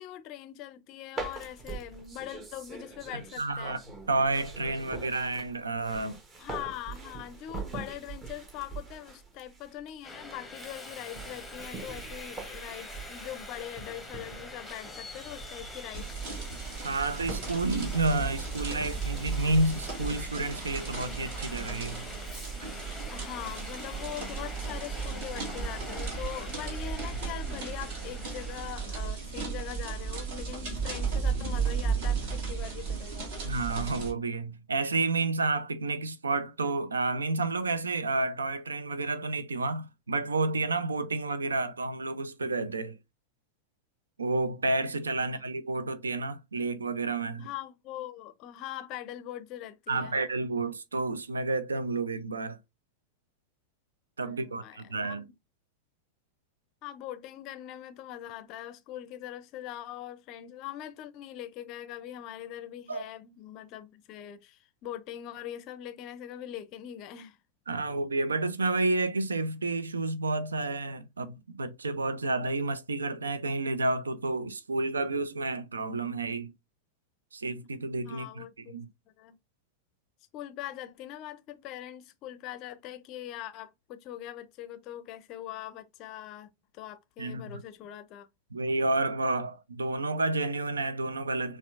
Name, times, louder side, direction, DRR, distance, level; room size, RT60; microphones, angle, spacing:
voice 1, 0.0-3.8 6.4-16.5 23.1-33.3 45.3-45.5 47.4-50.2 54.2-55.3 56.8-67.4 78.0-78.8 79.2-79.4 80.3-88.3, left 12 dB, 40° left, 0.5 m, -42 dB
sound 1, 1.1-21.0, right 4 dB, 25° right, 1.0 m, -44 dB
voice 2, 3.4-3.8 4.1-6.2 16.8-22.1 33.4-43.0 44.2-47.5 49.9-52.6 54.2-55.2 62.9-63.0 67.7-76.5 77.3-78.9 87.2-87.6 88.5-91.6, right 2 dB, 75° right, 0.4 m, -30 dB
Subway metro underground, 10.0-28.7, left 1 dB, ahead, 0.9 m, -44 dB
sound 2, 15.9-34.1, right 5 dB, 50° right, 1.6 m, -35 dB
4.2 x 2.4 x 2.4 m
figure-of-eight pair, 90°, 0 cm